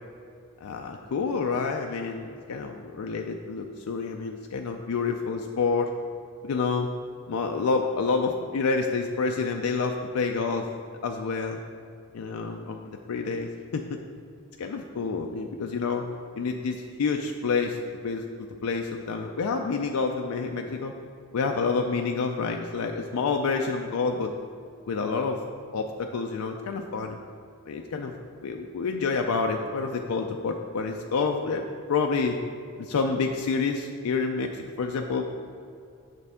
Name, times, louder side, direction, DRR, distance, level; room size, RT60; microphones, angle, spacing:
voice 1, 0.6-5.9 6.4-6.9 7.3-10.7 11.0-11.6 12.1-14.0 14.6-16.0 16.4-17.8 18.0-20.9 21.3-24.3 24.9-25.4 25.7-27.2 27.7-32.4 32.8-35.2, left 4 dB, 85° left, 3 dB, 0.4 m, -28 dB
7.5 x 6.7 x 3.5 m, 2.4 s
head